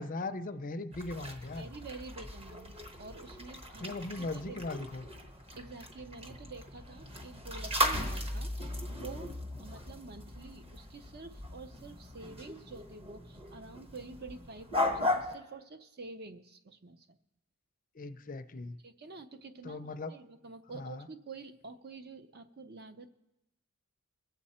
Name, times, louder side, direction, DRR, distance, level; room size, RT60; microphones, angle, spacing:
voice 1, 0.0-1.7 3.8-5.1 17.9-18.8 19.6-20.1 20.7-21.1, left 2 dB, 35° left, 10 dB, 0.5 m, -39 dB
sound 1, 0.9-15.4, left 1 dB, 25° right, 1.0 m, -37 dB
voice 2, 1.5-4.6 5.6-17.2 18.8-23.1, right 3 dB, 45° right, 9 dB, 0.7 m, -48 dB
22.0 x 7.6 x 4.3 m, 0.91 s
head